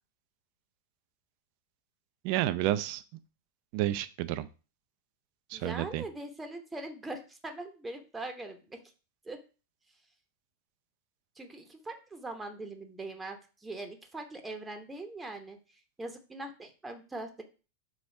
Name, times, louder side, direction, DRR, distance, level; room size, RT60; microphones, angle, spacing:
voice 1, 2.2-3.0 3.7-4.5 5.5-6.0, right 14 dB, 45° right, 13 dB, 0.4 m, -30 dB
voice 2, 5.5-8.8 9.2-9.4 11.4-15.6 16.0-17.4, right 2 dB, 10° right, 5 dB, 0.9 m, -41 dB
5.0 x 4.0 x 4.8 m, 0.34 s
figure-of-eight pair, 90°, 0 cm